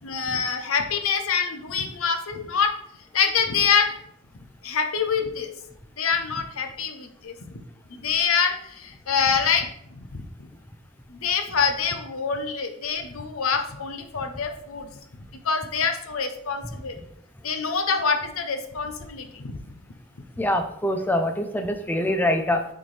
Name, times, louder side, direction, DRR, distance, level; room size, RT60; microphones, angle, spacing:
voice 1, 0.0-2.7 3.1-3.9 4.6-5.5 6.0-7.3 7.9-9.7 11.1-14.9 15.4-16.9 17.4-19.6, left 6 dB, 75° left, 6 dB, 0.8 m, -25 dB
voice 2, 20.4-22.6, left 1 dB, 10° left, 6 dB, 0.5 m, -24 dB
7.1 x 4.5 x 3.3 m, 0.74 s
head